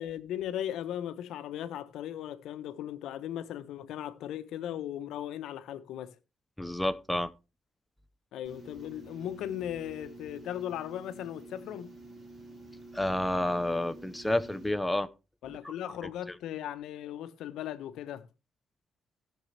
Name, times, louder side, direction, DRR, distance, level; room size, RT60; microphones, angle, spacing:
voice 1, 0.0-6.2 8.3-12.0 15.4-18.3, left 11 dB, 85° left, 1.0 m, -37 dB
voice 2, 6.6-7.3 12.9-15.1 15.5-15.7, left 1 dB, 5° left, 0.8 m, -30 dB
sound 1, 8.4-14.7, right 2 dB, 30° right, 5.0 m, -49 dB
16.5 x 6.4 x 3.3 m
cardioid pair, 90°, 0 cm